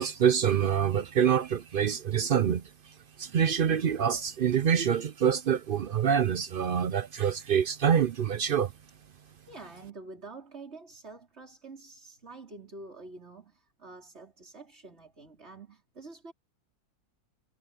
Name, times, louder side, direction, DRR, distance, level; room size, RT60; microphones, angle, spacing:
voice 1, 0.0-2.6 3.2-8.7, right 8 dB, 65° right, 0.5 m, -26 dB
voice 2, 9.5-16.3, right 3 dB, 45° right, 4.8 m, -47 dB
omnidirectional pair, 1.6 m